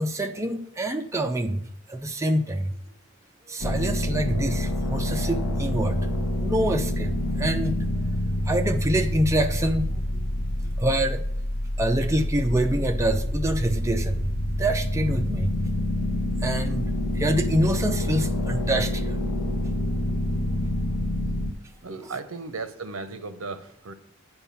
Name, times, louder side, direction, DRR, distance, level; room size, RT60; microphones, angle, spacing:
voice 1, 0.0-1.6 1.9-2.7 3.5-6.1 6.4-7.7 8.5-9.9 10.8-11.2 11.8-14.3 14.6-15.5 16.4-16.9 17.1-19.2, right 1 dB, 15° right, 0.5 m, -26 dB
sound 1, 3.6-21.5, left 1 dB, 80° left, 0.9 m, -27 dB
voice 2, 21.8-23.9, right 3 dB, 70° right, 0.7 m, -36 dB
8.9 x 4.5 x 5.6 m
head